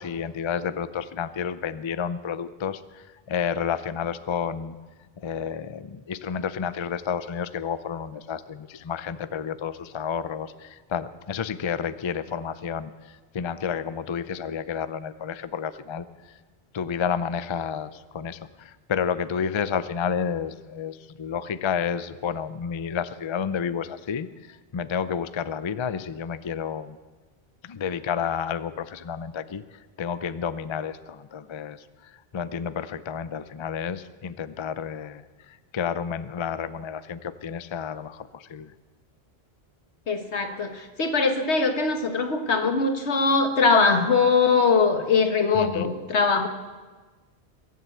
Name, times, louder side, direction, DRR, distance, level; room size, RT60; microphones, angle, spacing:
voice 1, 0.0-4.8 5.2-16.3 16.7-27.0 27.6-29.6 30.0-38.7 45.5-45.9, left 7 dB, 40° left, 14 dB, 0.4 m, -31 dB
voice 2, 40.1-46.5, left 4 dB, 85° left, 6 dB, 1.7 m, -22 dB
22.5 x 7.6 x 8.0 m, 1.3 s
omnidirectional pair, 1.1 m